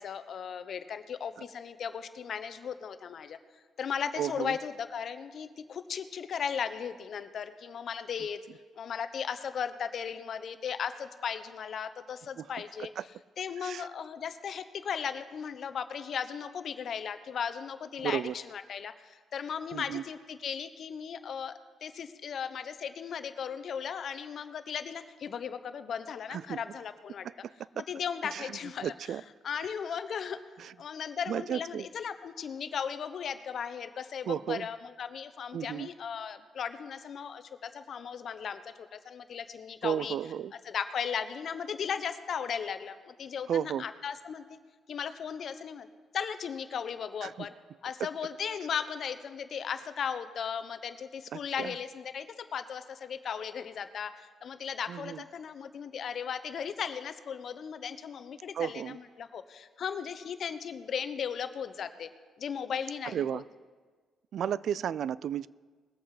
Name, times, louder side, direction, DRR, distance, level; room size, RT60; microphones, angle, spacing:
voice 1, 0.0-3.4 3.8-8.4 8.8-12.9 13.4-21.5 21.8-27.3 27.8-28.9 29.4-30.4 30.8-40.2 40.6-44.6 44.9-45.9 46.1-47.5 47.8-52.3 52.5-62.1 62.4-63.4, left 7 dB, 60° left, 11 dB, 0.9 m, -36 dB
voice 2, 4.2-4.6 12.4-12.5 13.0-13.1 13.6-13.9 18.0-18.3 19.7-20.0 26.3-26.6 27.4-27.8 28.2-29.2 30.6-30.7 31.3-31.9 34.3-34.7 35.5-35.9 39.8-40.5 43.5-43.8 47.2-47.5 48.0-48.1 51.3-51.7 54.9-55.2 58.5-59.0 63.0-63.5 64.3-65.5, right 9 dB, 65° right, 20 dB, 0.3 m, -33 dB
20.0 x 7.9 x 4.9 m, 1.5 s
cardioid pair, 90°, 0 cm